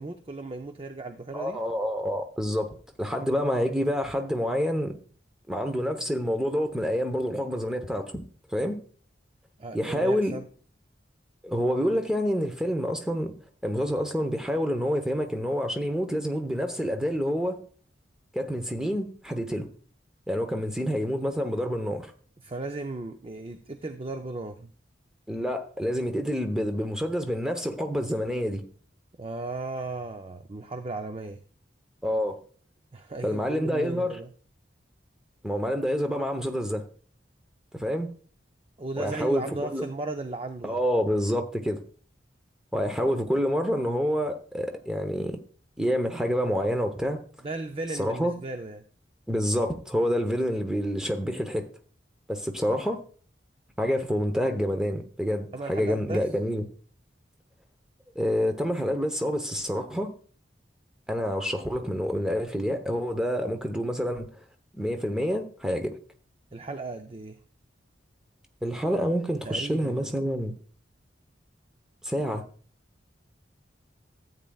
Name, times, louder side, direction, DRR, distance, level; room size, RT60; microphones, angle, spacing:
voice 1, 0.0-1.6 9.6-10.5 22.4-24.7 29.2-31.4 32.9-34.3 38.8-40.8 47.4-48.8 52.7-52.8 55.5-56.3 66.5-67.4 69.4-70.1, right 2 dB, 30° right, 0.5 m, -36 dB
voice 2, 1.3-5.0 5.5-8.2 8.5-8.8 9.7-10.4 11.4-13.3 13.6-17.6 18.3-19.7 20.3-22.1 25.3-28.6 32.0-32.4 33.2-34.2 35.4-36.9 37.7-38.1 39.0-39.8 40.6-41.8 42.7-45.4 45.8-47.2 48.0-48.4 49.3-51.7 52.3-53.0 53.8-56.7 58.1-60.1 61.1-64.3 64.7-66.0 68.6-70.6 72.0-72.4, equal, 5° right, 0.8 m, -27 dB
14.0 x 8.8 x 2.3 m
head